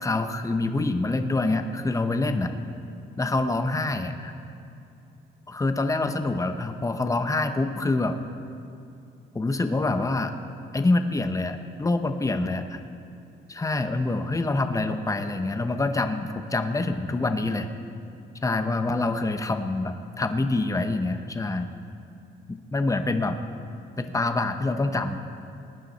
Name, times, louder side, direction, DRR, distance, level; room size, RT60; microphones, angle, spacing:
voice 1, 0.0-2.5 3.2-4.3 5.5-8.1 9.3-10.3 10.7-12.8 13.5-17.7 18.4-21.7 22.5-23.3 24.0-25.2, left 2 dB, 15° left, 7 dB, 0.9 m, -26 dB
19.0 x 10.0 x 4.3 m, 2.7 s
cardioid pair, 90°, 20 cm